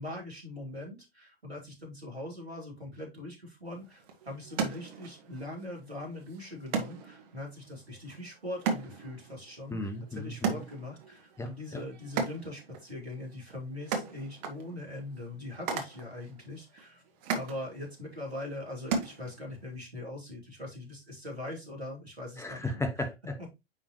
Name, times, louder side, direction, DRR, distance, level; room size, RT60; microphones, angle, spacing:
voice 1, 0.0-17.0 17.3-22.8 23.4-23.5, left 1 dB, 90° right, 3.0 m, -41 dB
sound 1, 3.7-19.7, right 5 dB, 40° right, 1.7 m, -38 dB
voice 2, 9.7-10.6 11.4-11.8 22.4-23.5, left 1 dB, 10° left, 0.9 m, -35 dB
9.5 x 3.6 x 3.0 m
figure-of-eight pair, 95°, 31 cm